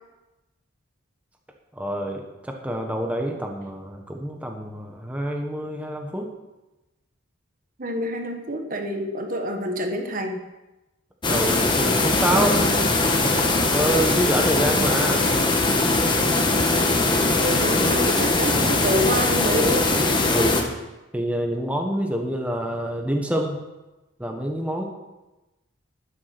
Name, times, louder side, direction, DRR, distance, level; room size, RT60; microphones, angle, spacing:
voice 1, 1.8-6.3 11.3-12.6 12.9-13.0 13.7-15.3 20.3-20.7 21.1-23.6 24.2-24.8, right 1 dB, 5° right, 2 dB, 1.2 m, -27 dB
voice 2, 7.8-10.4 12.3-12.8 17.4-19.9, equal, 40° right, 4 dB, 1.2 m, -27 dB
sound 1, 11.2-20.6, left 2 dB, 20° left, 1.3 m, -21 dB
12.0 x 9.9 x 6.0 m, 1.0 s
head